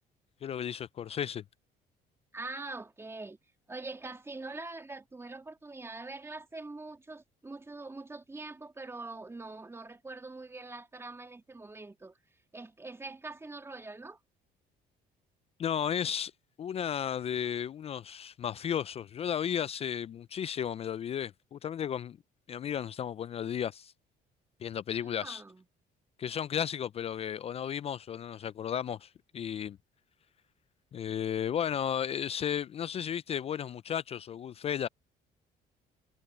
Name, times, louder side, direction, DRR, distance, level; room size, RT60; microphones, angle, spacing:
voice 1, 0.4-1.4 15.6-16.3 16.6-22.2 22.5-23.9 24.6-25.4 26.2-29.8 30.9-34.9, left 9 dB, 35° left, 0.3 m, -34 dB
voice 2, 2.3-3.4 3.7-12.1 12.5-14.2 25.0-25.6, right 3 dB, 15° right, 2.7 m, -43 dB
cardioid pair, 110°, 17 cm